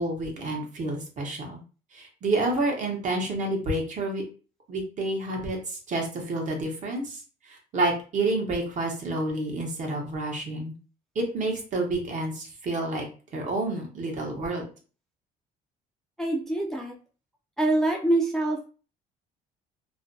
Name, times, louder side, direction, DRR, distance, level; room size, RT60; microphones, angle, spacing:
voice 1, 0.0-1.6 1.9-4.2 4.7-7.2 7.5-10.7 11.1-13.0 13.3-14.6, right 2 dB, 45° right, 1 dB, 0.9 m, -29 dB
voice 2, 16.2-17.0 17.6-18.7, right 2 dB, 5° left, 0 dB, 0.4 m, -25 dB
2.5 x 2.1 x 2.6 m, 0.37 s
cardioid pair, 110°, 17 cm